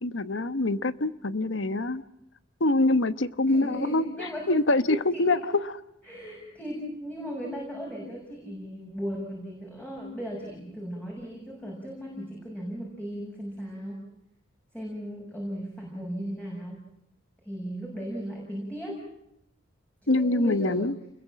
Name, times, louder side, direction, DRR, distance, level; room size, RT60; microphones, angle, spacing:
voice 1, 0.0-2.0 2.6-5.7 20.1-20.9, left 2 dB, 75° left, 13 dB, 1.2 m, -25 dB
voice 2, 3.4-5.5 6.1-14.0 14.7-16.8 17.4-19.0 20.0-20.9, equal, 10° left, -2 dB, 6.6 m, -36 dB
29.5 x 22.0 x 7.5 m, 0.81 s
head